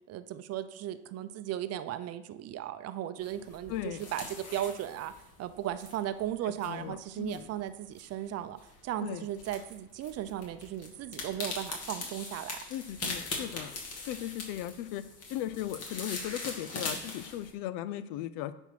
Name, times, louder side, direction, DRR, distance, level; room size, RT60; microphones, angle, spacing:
voice 1, 0.1-5.1 5.4-12.6 13.0-13.1, right 12 dB, 45° right, 12 dB, 0.6 m, -36 dB
sound 1, 3.2-17.5, left 3 dB, 45° left, 2.5 m, -42 dB
voice 2, 3.7-4.0 6.4-7.5 9.0-9.3 12.7-13.7 14.1-15.0 15.3-18.5, left 12 dB, 70° left, 14 dB, 0.7 m, -37 dB
9.7 x 4.6 x 5.9 m, 0.87 s
supercardioid pair, 105°, 35 cm